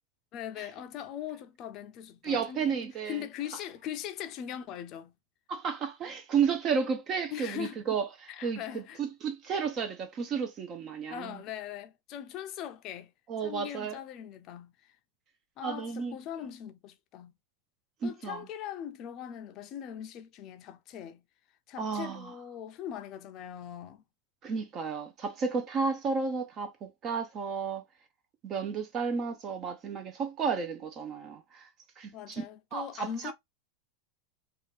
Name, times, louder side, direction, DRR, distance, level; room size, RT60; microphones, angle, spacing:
voice 1, 0.3-2.8 3.1-5.1 7.3-7.8 8.3-9.0 11.1-13.1 13.4-14.9 15.6-17.3 18.0-21.2 21.7-24.0 32.1-33.3, left 10 dB, 40° left, 0.5 m, -40 dB
voice 2, 2.2-3.2 5.5-11.4 13.3-14.0 15.6-16.2 18.0-18.5 21.8-22.3 24.4-27.8 28.4-31.7 32.0-32.4 32.7-33.3, right 5 dB, 35° right, 0.6 m, -32 dB
2.8 x 2.4 x 3.3 m
supercardioid pair, 135°, 0 cm